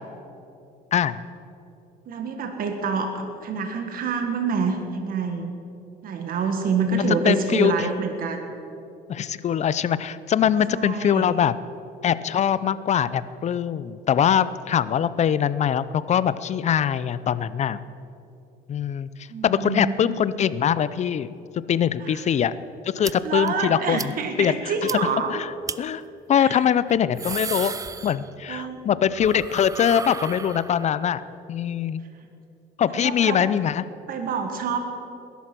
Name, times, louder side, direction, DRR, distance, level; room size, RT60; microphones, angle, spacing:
voice 1, 0.9-1.2 6.9-7.9 9.1-11.5 12.0-17.8 18.7-19.1 19.4-21.3 21.7-22.5 22.8-24.0 24.4-24.5 25.3-25.5 25.8-26.0 26.3-27.7 28.0-31.2 31.5-32.0 32.8-33.8, left 9 dB, 45° left, 16 dB, 0.5 m, -22 dB
voice 2, 2.1-5.5 6.0-8.5 10.7-11.3 19.3-20.3 22.0-22.3 23.0-25.3 26.3-26.7 28.5-28.8 32.9-33.4 34.1-34.8, right 5 dB, 60° right, 5 dB, 1.6 m, -27 dB
sound 1, 23.0-23.1 23.5-23.6 24.0-24.1 24.4-24.5 24.9-25.0 25.7-25.8 26.9-28.6 28.9-31.0, right 5 dB, 20° right, 0.4 m, -34 dB
19.5 x 11.5 x 6.0 m, 2.8 s
cardioid pair, 110°, 17 cm